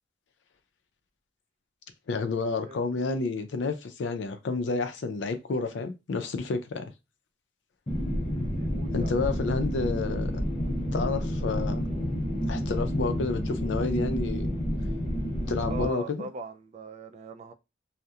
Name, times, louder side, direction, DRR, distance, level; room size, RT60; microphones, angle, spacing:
voice 1, 2.1-6.9 8.9-10.3 10.9-11.9 12.5-14.6 15.5-16.3, left 3 dB, 90° left, 0.4 m, -30 dB
sound 1, 7.9-15.9, equal, 30° left, 0.6 m, -29 dB
voice 2, 8.4-9.1 15.7-17.5, right 2 dB, 40° right, 0.3 m, -40 dB
2.7 x 2.1 x 2.3 m
head